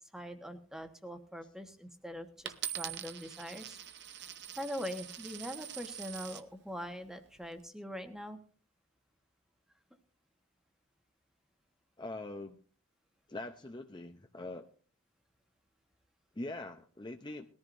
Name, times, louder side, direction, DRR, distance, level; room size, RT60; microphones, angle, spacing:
voice 1, 0.1-3.8 4.6-8.4, equal, ahead, 6 dB, 1.2 m, -42 dB
Coin (dropping), 2.5-6.5 7.2-7.6, right 10 dB, 55° right, 0.9 m, -43 dB
voice 2, 12.0-12.6 13.3-14.7 16.4-17.5, left 2 dB, 20° left, 6 dB, 0.6 m, -43 dB
20.5 x 14.0 x 2.6 m, 0.41 s
head